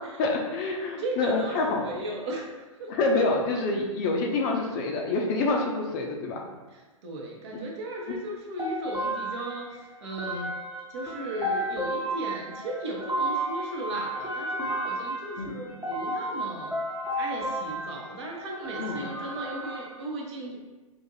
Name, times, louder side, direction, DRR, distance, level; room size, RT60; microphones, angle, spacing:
voice 1, 0.2-2.0 2.9-6.4 15.4-15.6 18.8-19.1, left 3 dB, 35° left, 1 dB, 0.5 m, -27 dB
voice 2, 1.0-2.9 6.7-10.5 10.9-16.7 17.2-20.6, right 1 dB, 50° right, -1 dB, 0.9 m, -36 dB
sound 1, 8.6-19.9, right 1 dB, 10° right, 0.8 m, -33 dB
2.7 x 2.5 x 4.0 m, 1.2 s
figure-of-eight pair, 120°, 18 cm